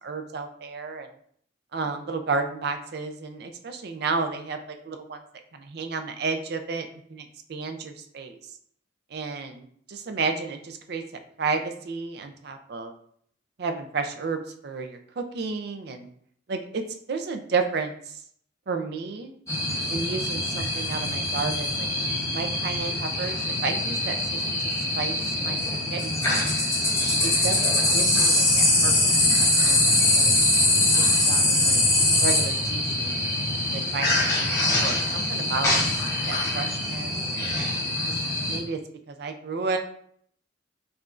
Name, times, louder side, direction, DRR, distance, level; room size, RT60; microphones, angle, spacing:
voice 1, 0.0-1.1 1.7-4.6 4.9-5.2 5.5-8.4 9.1-11.0 11.4-12.9 13.6-16.1 16.5-16.8 17.1-17.9 18.7-19.3 19.9-21.9 22.3-24.4 25.0-25.2 25.4-25.6 25.9-26.5 27.2-29.8 30.1-30.3 31.1-31.8 32.2-35.8 36.3-37.1 38.5-38.8 39.1-39.8, right 4 dB, 60° right, 7 dB, 0.5 m, -32 dB
sound 1, 19.5-38.6, left 1 dB, 15° left, 0.9 m, -23 dB
4.9 x 2.4 x 2.5 m, 0.63 s
head